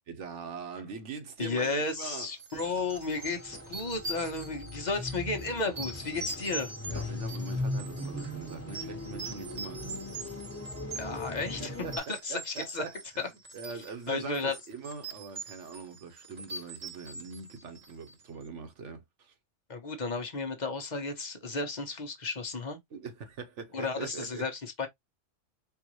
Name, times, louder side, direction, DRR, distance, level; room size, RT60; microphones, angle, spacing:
voice 1, 0.1-2.3 4.9-5.0 6.9-10.4 11.3-13.3 13.5-19.3 22.9-24.5, right 5 dB, 70° right, 1.3 m, -42 dB
voice 2, 1.4-6.7 10.9-11.7 12.2-12.8 13.2-13.3 14.1-14.6 19.7-22.8 23.7-24.9, left 3 dB, 40° left, 0.9 m, -33 dB
sound 1, 2.4-18.2, right 2 dB, 35° right, 0.8 m, -43 dB
sound 2, 2.5-12.0, left 2 dB, 10° left, 1.2 m, -39 dB
4.6 x 2.5 x 3.0 m
omnidirectional pair, 1.3 m